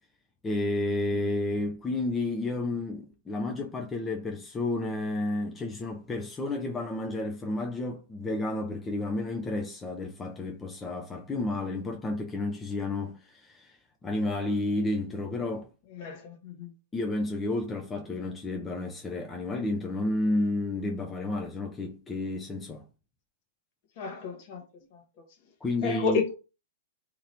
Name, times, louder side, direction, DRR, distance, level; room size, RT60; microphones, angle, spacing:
voice 1, 0.4-15.7 16.9-22.9 25.6-26.2, left 2 dB, 15° left, 0.5 m, -31 dB
voice 2, 16.0-16.7 24.0-24.6 25.8-26.3, left 5 dB, 45° left, 1.0 m, -30 dB
2.9 x 2.9 x 2.6 m
figure-of-eight pair, 110°, 0 cm